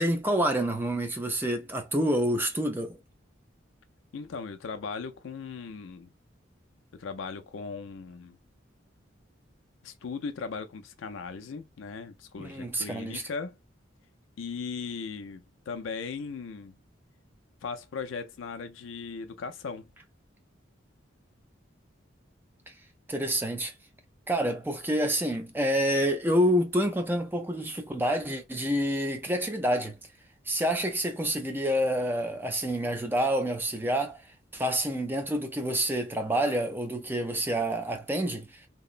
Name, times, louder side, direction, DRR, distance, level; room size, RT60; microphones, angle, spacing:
voice 1, 0.0-3.0 12.4-13.2 23.1-23.7 24.3-30.0 30.5-34.2 34.5-38.6, equal, 10° right, 0.4 m, -28 dB
voice 2, 4.1-6.1 7.0-8.4 9.8-13.6 14.4-16.8 17.6-19.9, left 5 dB, 80° left, 0.4 m, -38 dB
2.9 x 2.0 x 2.4 m
head